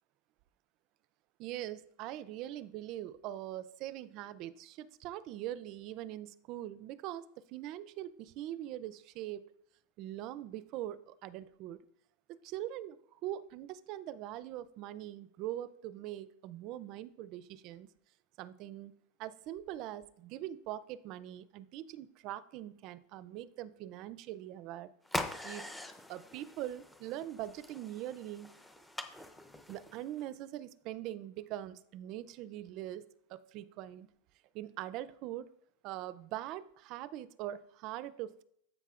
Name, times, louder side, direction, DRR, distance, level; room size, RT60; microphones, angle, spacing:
voice 1, 1.4-9.4 10.0-11.8 12.3-17.9 18.4-18.9 19.2-24.9 25.4-25.7 26.1-28.5 29.7-34.1 34.5-35.5 35.8-38.4, right 13 dB, 40° right, 17 dB, 0.4 m, -42 dB
sound 1, 25.0-30.2, left 1 dB, 5° left, 0.6 m, -43 dB
9.9 x 8.0 x 2.4 m, 0.69 s
supercardioid pair, 155°, 0 cm